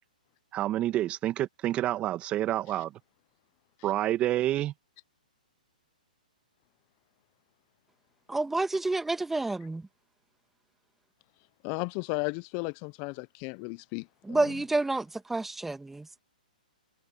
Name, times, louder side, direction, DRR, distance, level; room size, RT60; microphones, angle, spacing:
voice 1, 0.5-2.9 3.8-4.7, right 13 dB, 25° right, 1.9 m, -28 dB
voice 2, 8.3-9.9 14.2-16.2, right 2 dB, 5° right, 2.2 m, -29 dB
voice 3, 11.6-14.4, left 31 dB, 35° left, 0.6 m, -34 dB
hypercardioid pair, 125°, 5 cm